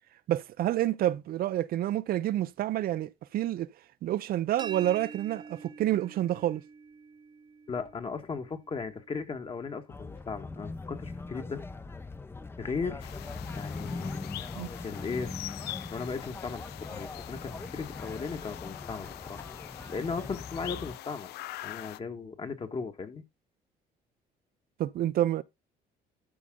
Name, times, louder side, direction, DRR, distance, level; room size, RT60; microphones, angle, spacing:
voice 1, 0.3-3.7 4.0-6.6 14.6-14.7 24.8-25.4, right 13 dB, 60° right, 0.6 m, -28 dB
sound 1, 4.6-10.3, right 5 dB, 25° right, 0.8 m, -48 dB
voice 2, 7.7-11.6 12.6-13.1 13.5-14.4 14.8-15.3 15.9-16.6 16.9-21.3 21.6-23.2, left 5 dB, 35° left, 1.5 m, -37 dB
sound 2, 9.9-21.0, left 3 dB, 15° left, 0.7 m, -41 dB
sound 3, 13.0-22.0, left 15 dB, 75° left, 0.5 m, -44 dB
12.5 x 5.0 x 3.7 m
cardioid pair, 110°, 17 cm